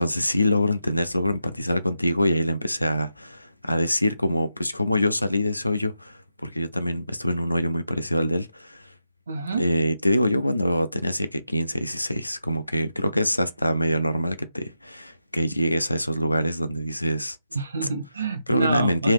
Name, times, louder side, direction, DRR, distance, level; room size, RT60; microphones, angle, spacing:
voice 1, 0.0-8.9 9.6-17.4 18.5-19.1, left 1 dB, 85° left, 0.3 m, -25 dB
voice 2, 9.3-9.6 17.5-19.1, right 4 dB, 75° right, 0.4 m, -28 dB
3.1 x 2.6 x 3.3 m
figure-of-eight pair, 90°, 0 cm